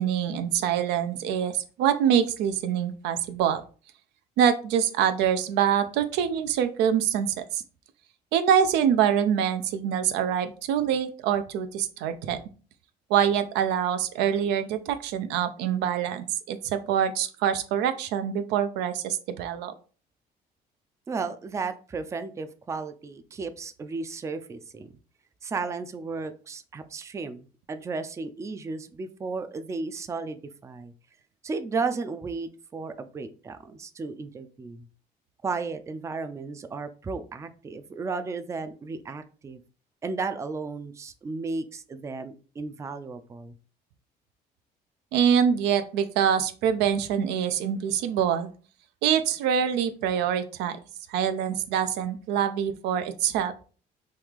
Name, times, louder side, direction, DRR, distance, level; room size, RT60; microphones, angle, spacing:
voice 1, 0.0-3.6 4.4-7.6 8.3-12.4 13.1-19.7 45.1-48.5 49.0-50.8 51.1-53.5, right 8 dB, 90° right, 10 dB, 0.4 m, -25 dB
voice 2, 21.1-25.0 25.4-30.9 31.4-34.9 35.4-39.6 40.0-43.5, right 4 dB, 15° right, 10 dB, 0.3 m, -34 dB
3.1 x 2.4 x 3.5 m, 0.38 s
cardioid pair, 110°, 17 cm